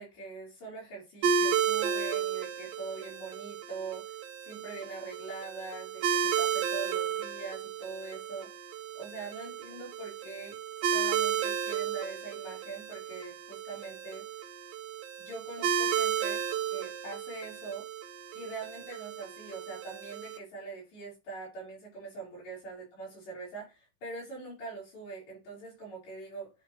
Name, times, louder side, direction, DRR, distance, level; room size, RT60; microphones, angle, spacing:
voice 1, 0.0-4.2 4.4-8.5 9.0-10.6 10.8-14.3 15.2-17.9 18.3-26.5, right 4 dB, 85° left, -6 dB, 6.2 m, -43 dB
sound 1, 1.2-20.4, right 8 dB, 80° right, 2.4 m, -33 dB
9.6 x 3.4 x 3.2 m, 0.28 s
omnidirectional pair, 4.1 m